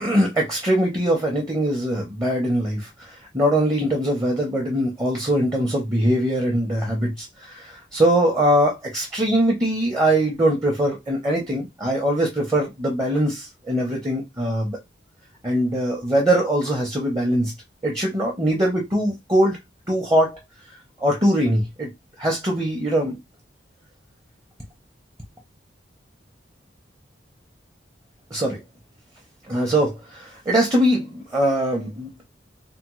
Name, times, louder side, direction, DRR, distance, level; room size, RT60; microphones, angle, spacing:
voice 1, 0.0-2.9 3.3-14.8 15.4-17.5 17.8-19.6 19.9-20.4 21.0-21.9 22.2-23.1 28.3-28.6 29.5-32.2, right 1 dB, 20° right, 0.7 m, -22 dB
3.4 x 2.0 x 3.0 m
head